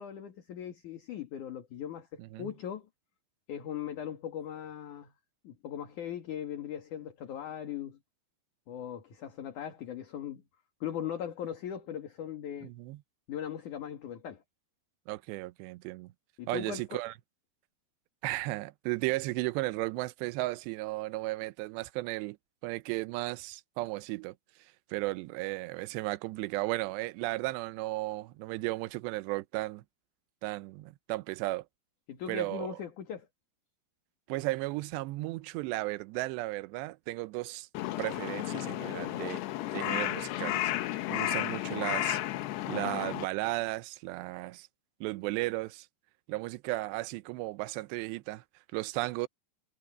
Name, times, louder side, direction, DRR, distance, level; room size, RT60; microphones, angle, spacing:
voice 1, 0.0-2.9 3.5-5.1 5.4-8.0 8.7-10.4 10.8-12.7 13.3-14.4 16.4-17.0 32.1-33.3, left 9 dB, 50° left, 2.9 m, -39 dB
voice 2, 2.2-2.5 12.6-13.0 15.1-16.1 16.5-17.1 18.2-22.4 22.6-24.3 24.9-29.8 30.4-31.7 32.3-32.7 34.3-37.7 38.0-39.4 39.7-42.2 42.7-44.7 45.0-45.9 46.3-48.4 48.7-49.3, right 20 dB, 80° right, 2.8 m, -35 dB
Crow, 37.7-43.3, left 15 dB, 75° left, 3.0 m, -33 dB
omnidirectional pair, 5.2 m